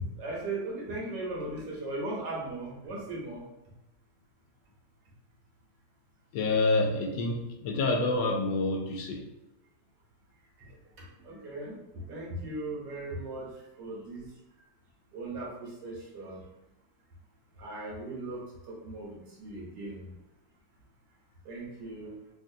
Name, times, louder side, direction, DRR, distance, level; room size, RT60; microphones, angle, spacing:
voice 1, 0.2-3.4 11.2-11.7 12.1-13.5 13.8-14.2 15.1-16.4 17.6-20.1 21.4-22.1, right 2 dB, 80° right, -4 dB, 1.6 m, -38 dB
voice 2, 6.3-9.3, left 2 dB, 85° left, 3 dB, 1.2 m, -27 dB
3.5 x 2.5 x 2.6 m, 0.95 s
omnidirectional pair, 1.8 m